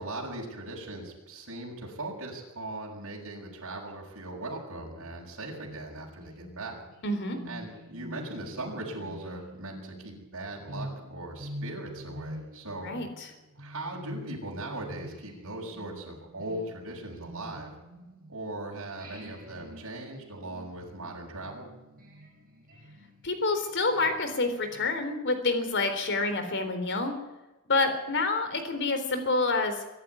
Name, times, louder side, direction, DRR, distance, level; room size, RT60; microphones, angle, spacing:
voice 1, 0.0-6.8 7.5-12.9 13.6-17.7 18.3-21.7, right 2 dB, 65° right, -2 dB, 7.0 m, -39 dB
sound 1, 5.4-18.5 19.0-24.9, equal, 40° right, 7.9 m, -46 dB
voice 2, 7.0-7.4 12.8-13.3 23.2-27.1 27.7-29.8, left 3 dB, 55° left, 8 dB, 3.8 m, -28 dB
23.5 x 11.5 x 9.7 m, 1.1 s
head